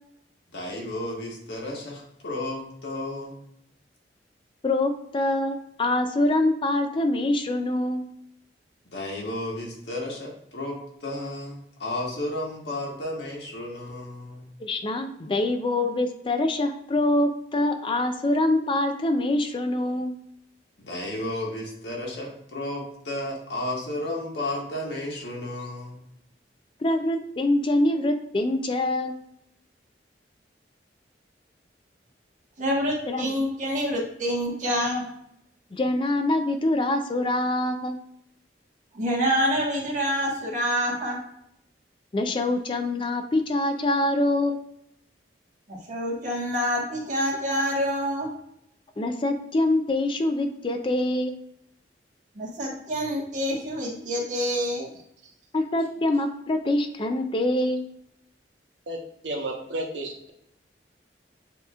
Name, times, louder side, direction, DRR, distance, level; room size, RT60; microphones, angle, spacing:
voice 1, 0.5-3.4 8.9-14.5 15.3-15.4 20.8-26.0, left 1 dB, 75° left, -1 dB, 1.4 m, -33 dB
voice 2, 4.6-8.0 14.6-20.2 26.8-29.2 33.1-33.3 35.7-38.0 42.1-44.6 49.0-51.3 55.5-57.9, left 1 dB, 30° left, 6 dB, 0.4 m, -25 dB
voice 3, 32.6-35.0 38.9-41.2 45.7-48.3 52.3-54.9, equal, 45° right, -2 dB, 1.5 m, -27 dB
voice 4, 58.9-60.3, right 1 dB, 90° right, 1 dB, 1.0 m, -33 dB
7.7 x 2.9 x 2.4 m, 0.76 s
head